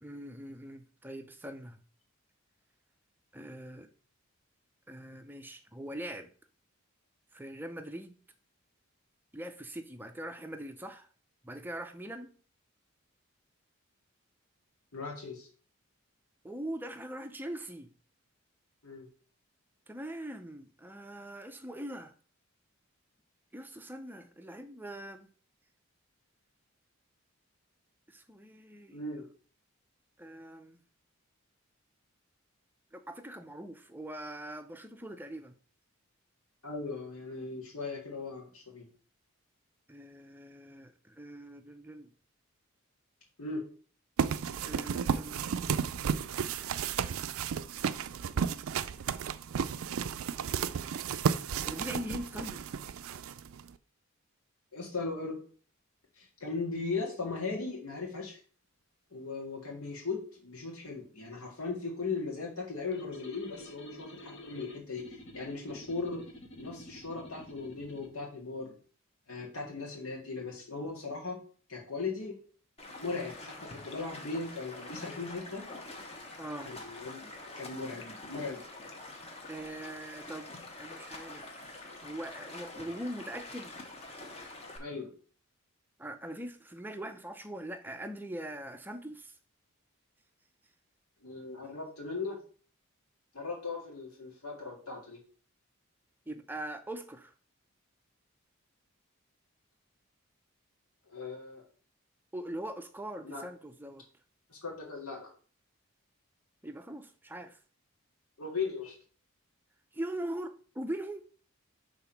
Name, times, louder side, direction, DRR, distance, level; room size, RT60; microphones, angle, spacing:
voice 1, 0.0-1.8 3.3-3.9 4.9-6.3 7.3-8.2 9.3-11.1 11.4-12.3 16.4-17.9 19.9-22.1 23.5-25.3 28.1-29.0 30.2-30.8 32.9-35.5 39.9-42.1 44.6-45.5 51.7-52.6 76.4-76.7 77.2-77.3 79.5-80.5 80.8-83.7 86.0-89.4 96.3-97.3 102.3-104.1 106.6-107.6 109.9-111.2, right 1 dB, 10° right, 0.5 m, -42 dB
voice 2, 14.9-15.5 18.8-19.1 28.9-29.2 36.6-38.9 43.4-43.6 54.7-55.4 56.2-58.4 59.1-66.2 66.6-68.7 69.3-71.4 71.7-72.3 73.0-75.7 76.7-77.2 77.6-78.6 84.8-85.1 91.2-92.4 93.3-95.2 101.1-101.6 103.2-103.4 104.5-105.3 108.4-109.0, left 4 dB, 80° left, 1.9 m, -38 dB
sound 1, 44.2-53.7, right 7 dB, 70° right, 0.4 m, -33 dB
sound 2, 62.9-68.1, equal, 55° left, 1.2 m, -49 dB
Stream, 72.8-84.8, left 2 dB, 30° left, 1.1 m, -46 dB
5.9 x 3.6 x 5.7 m
head